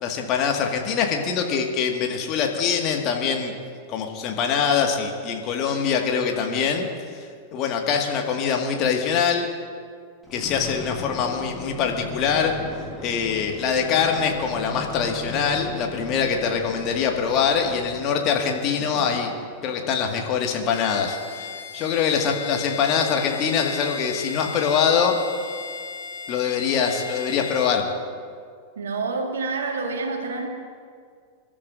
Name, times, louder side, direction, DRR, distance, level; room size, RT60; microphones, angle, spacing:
voice 1, 0.0-3.5 3.9-6.9 7.5-9.5 10.3-12.5 13.0-19.3 19.6-21.5 21.7-25.1 26.3-27.9, left 6 dB, 35° left, 2 dB, 1.9 m, -23 dB
sound 1, 10.2-18.2 18.8-20.1 20.7-20.8, left 3 dB, 10° left, 2.4 m, -37 dB
Bowed string instrument, 20.7-27.8, left 5 dB, 55° left, 1.2 m, -36 dB
voice 2, 28.8-30.5, right 3 dB, 65° right, 3 dB, 1.9 m, -28 dB
28.0 x 13.0 x 2.6 m, 2.1 s
figure-of-eight pair, 90°, 0 cm